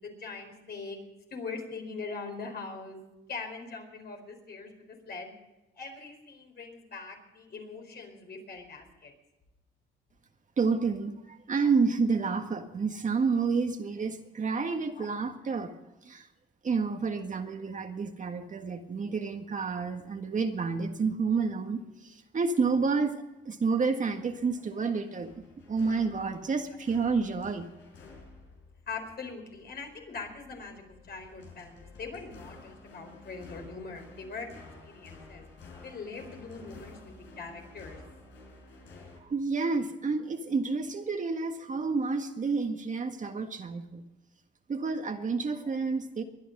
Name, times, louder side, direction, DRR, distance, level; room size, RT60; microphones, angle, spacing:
voice 1, 0.0-1.0 1.3-3.0 3.3-5.3 5.7-9.1 14.9-15.1 26.7-26.8 28.9-34.5 34.8-35.4 35.8-38.0, left 4 dB, 55° left, 3 dB, 4.5 m, -42 dB
voice 2, 10.6-15.7 16.0-16.3 16.6-25.3 25.7-27.7 39.2-44.0 44.7-46.2, right 4 dB, 40° right, 5 dB, 1.7 m, -29 dB
sound 1, 24.2-39.2, left 3 dB, 80° left, 5.1 m, -52 dB
23.0 x 10.0 x 5.4 m, 0.98 s
cardioid pair, 90°, 20 cm